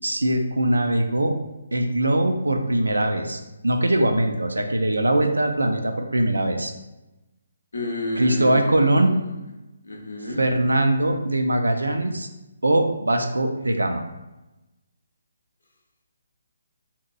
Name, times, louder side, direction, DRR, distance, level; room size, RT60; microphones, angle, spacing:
voice 1, 0.0-1.4 1.7-6.7 8.2-9.2 10.4-12.3 12.6-14.0, right 1 dB, 75° right, 4 dB, 0.3 m, -21 dB
voice 2, 7.7-8.8 9.8-10.4, left 1 dB, 60° left, 0 dB, 0.6 m, -30 dB
2.7 x 2.2 x 2.5 m, 1.0 s
figure-of-eight pair, 140°, 0 cm